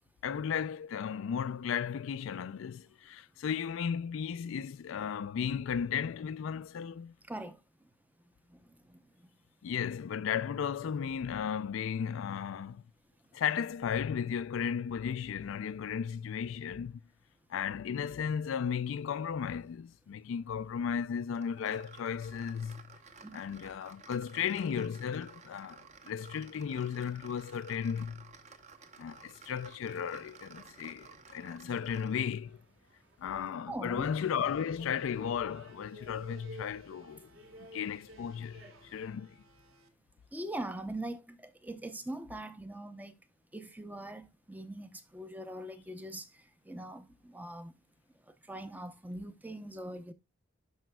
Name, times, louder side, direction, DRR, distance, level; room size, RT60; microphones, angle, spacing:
voice 1, 0.2-7.1 9.6-12.8 13.3-17.0 17.5-22.8 23.3-28.2 29.0-32.6 33.2-37.3 37.7-39.4, left 7 dB, 70° left, 0.3 m, -35 dB
voice 2, 7.3-7.6 8.5-8.6 8.9-9.0 23.2-23.4 33.7-34.1 40.3-43.1 43.5-47.7 48.5-50.1, right 1 dB, 10° right, 0.6 m, -42 dB
sound 1, 21.3-32.5, right 5 dB, 35° right, 0.9 m, -54 dB
sound 2, 29.6-39.1, equal, 60° right, 2.7 m, -55 dB
sound 3, 34.1-39.9, right 1 dB, 75° right, 1.2 m, -64 dB
12.0 x 5.1 x 2.2 m
head